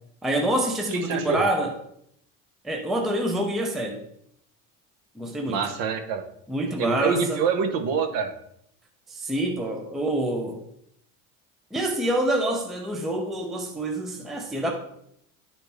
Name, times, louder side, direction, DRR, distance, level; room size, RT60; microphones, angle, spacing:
voice 1, 0.2-1.7 2.6-4.0 5.2-5.7 6.5-7.4 9.1-10.6 11.7-14.7, right 1 dB, ahead, 0.4 m, -26 dB
voice 2, 0.9-1.4 5.5-6.2 6.8-8.3, right 6 dB, 60° right, 1.0 m, -26 dB
10.5 x 4.3 x 3.3 m
cardioid pair, 155°, 39 cm